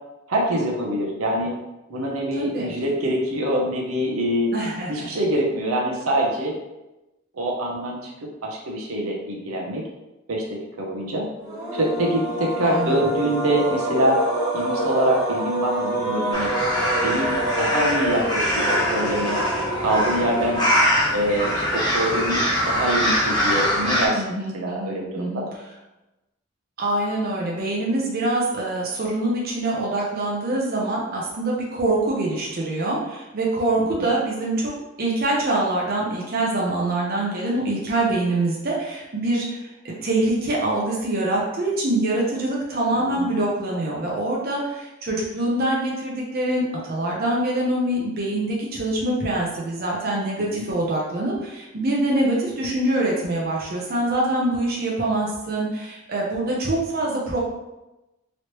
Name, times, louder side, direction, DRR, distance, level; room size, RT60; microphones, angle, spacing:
voice 1, 0.3-1.5 1.9-4.5 4.9-6.6 7.3-8.1 8.4-9.8 10.3-10.4 10.8-11.2 11.7-14.2 14.5-16.5 17.0-19.4 19.8-20.6 21.1-25.5 33.9-34.1 42.9-43.3 50.5-50.6, right 1 dB, 80° right, -1 dB, 0.7 m, -24 dB
voice 2, 2.4-2.7 4.5-5.1 12.6-13.0 24.1-25.4 26.8-34.7 35.0-57.4, right 1 dB, 45° right, -3 dB, 0.6 m, -24 dB
sound 1, 11.4-20.8, right 1 dB, 15° right, 0.9 m, -27 dB
sound 2, 16.3-24.1, equal, 20° left, 0.8 m, -23 dB
3.1 x 2.9 x 3.0 m, 1.0 s
head